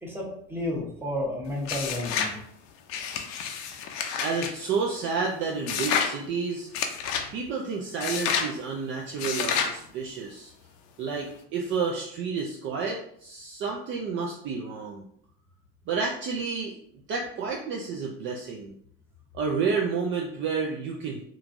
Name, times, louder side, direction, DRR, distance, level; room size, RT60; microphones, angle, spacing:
voice 1, 0.0-2.4, left 1 dB, 10° right, -2 dB, 0.8 m, -32 dB
sound 1, 1.7-2.4 2.9-4.5 5.7-6.1 6.7-7.3 8.0-8.5 9.2-9.8, left 7 dB, 60° left, 0.5 m, -29 dB
voice 2, 4.2-6.7 7.3-10.5 11.0-15.0 15.9-16.7 17.1-18.7 19.3-21.2, right 5 dB, 40° right, -1 dB, 0.4 m, -30 dB
3.0 x 2.4 x 2.5 m, 0.66 s
supercardioid pair, 110°, 30 cm